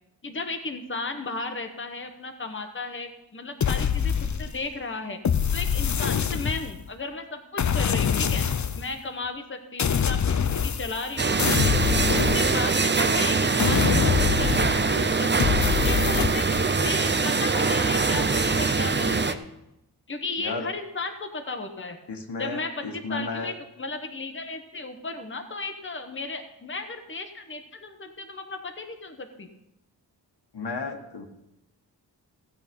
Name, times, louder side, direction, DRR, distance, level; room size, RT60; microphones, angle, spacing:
voice 1, 0.2-5.2 5.5-8.5 8.7-11.8 12.1-19.4 20.1-22.0 22.4-29.5, left 3 dB, 30° left, 5 dB, 1.2 m, -35 dB
sound 1, 3.6-4.7 5.2-6.9 7.6-8.9 9.8-11.1 11.4-13.0 13.6-15.0 15.4-16.7, left 7 dB, 45° left, 0.6 m, -25 dB
sound 2, 11.2-19.3, right 4 dB, 25° right, 0.7 m, -23 dB
voice 2, 22.1-23.5 30.5-31.3, left 3 dB, 75° left, 3 dB, 1.8 m, -33 dB
16.0 x 8.1 x 5.4 m, 0.88 s
wide cardioid pair, 85°, 41 cm